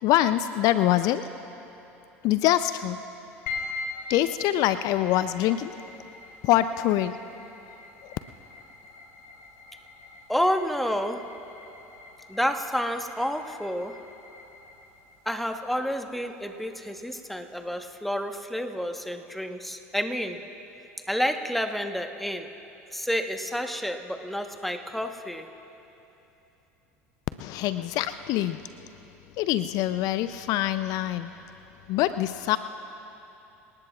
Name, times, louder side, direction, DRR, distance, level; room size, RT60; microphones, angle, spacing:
voice 1, 0.0-1.3 2.2-3.0 4.1-5.7 6.4-7.2 8.0-8.1 27.4-28.6 29.4-31.3 31.9-32.6, left 13 dB, 55° left, 12 dB, 0.4 m, -24 dB
sound 1, 3.5-17.9, left 4 dB, 70° left, 3.0 m, -43 dB
voice 2, 10.3-11.3 12.3-14.0 15.2-20.4 21.1-22.5 22.9-25.5, equal, ahead, 6 dB, 1.1 m, -29 dB
27.0 x 18.5 x 2.4 m, 3.0 s
hypercardioid pair, 75°, 7 cm